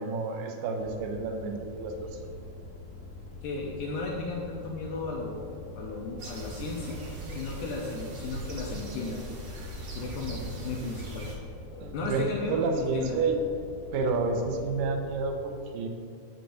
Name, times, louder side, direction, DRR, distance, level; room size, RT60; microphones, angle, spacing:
voice 1, 0.0-2.3 11.8-13.3 13.9-15.9, right 4 dB, 80° right, 3 dB, 2.1 m, -30 dB
sound 1, 0.8-15.2, left 2 dB, 60° left, 1.6 m, -45 dB
voice 2, 3.4-7.0 7.3-9.2 9.9-11.5 11.9-13.3, left 3 dB, 80° left, -2 dB, 1.8 m, -35 dB
sound 2, 6.2-11.4, right 2 dB, 65° right, 2.1 m, -40 dB
7.7 x 6.6 x 2.6 m, 2.6 s
omnidirectional pair, 4.3 m